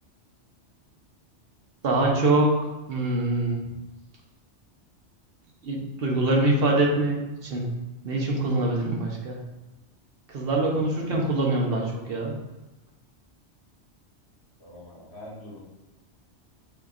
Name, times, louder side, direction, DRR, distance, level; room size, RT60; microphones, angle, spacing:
voice 1, 1.8-2.6 2.9-3.7 5.6-7.2 7.4-7.7 8.0-9.4 10.3-12.3, right 2 dB, 55° right, -1 dB, 1.1 m, -24 dB
voice 2, 10.5-10.8 14.6-15.6, left 1 dB, 65° left, -5 dB, 1.7 m, -44 dB
6.3 x 3.1 x 2.5 m, 1.0 s
omnidirectional pair, 1.2 m